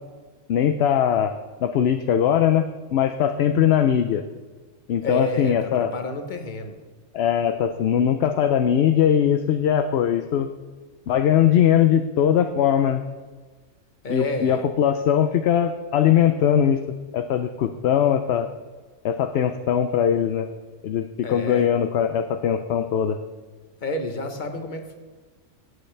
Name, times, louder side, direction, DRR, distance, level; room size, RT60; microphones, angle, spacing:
voice 1, 0.5-1.4 1.6-2.7 2.9-4.2 4.9-5.9 7.1-10.5 11.1-13.0 14.1-16.8 17.1-18.5 19.0-20.5 20.8-23.2, left 9 dB, 65° left, 8 dB, 0.7 m, -20 dB
voice 2, 5.0-6.8 14.0-14.7 21.2-21.7 23.8-24.9, left 2 dB, 40° left, 5 dB, 1.2 m, -30 dB
17.0 x 8.0 x 3.3 m, 1.4 s
omnidirectional pair, 1.3 m